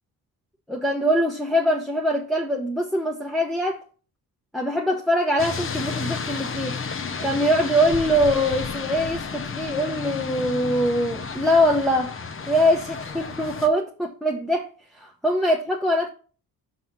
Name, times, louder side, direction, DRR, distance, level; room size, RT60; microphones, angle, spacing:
voice 1, 0.7-3.8 4.5-6.8 7.2-12.2 12.5-16.1, equal, ahead, 0.8 m, -23 dB
sound 1, 5.4-13.7, left 5 dB, 35° left, 0.8 m, -32 dB
5.9 x 5.6 x 5.7 m
cardioid pair, 125°, 37 cm